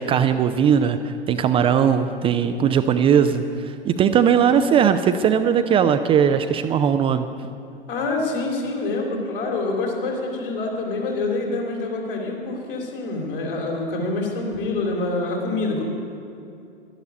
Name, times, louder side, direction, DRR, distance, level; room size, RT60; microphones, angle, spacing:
voice 1, 0.0-7.3, right 8 dB, 20° right, 8 dB, 0.4 m, -19 dB
voice 2, 7.9-15.8, left 3 dB, 65° left, -1 dB, 3.6 m, -26 dB
12.0 x 11.5 x 8.3 m, 2.6 s
figure-of-eight pair, 90°, 29 cm